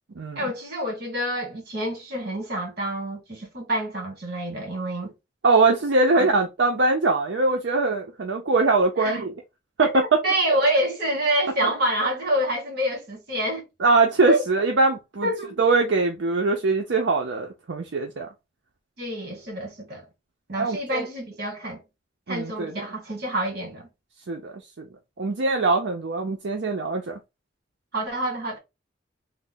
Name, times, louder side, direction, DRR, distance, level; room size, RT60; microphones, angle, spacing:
voice 1, 0.3-5.1 6.1-6.3 9.0-9.2 9.9-13.7 14.3-14.4 15.2-15.6 19.0-20.1 20.5-21.8 22.3-23.9 27.9-28.6, right 1 dB, 60° right, 1.4 m, -27 dB
voice 2, 5.4-9.3 9.8-10.2 13.8-15.3 15.6-18.3 20.6-21.1 22.3-22.8 24.3-24.9 25.2-27.2, right 3 dB, 75° right, 0.6 m, -22 dB
3.2 x 2.1 x 3.7 m
head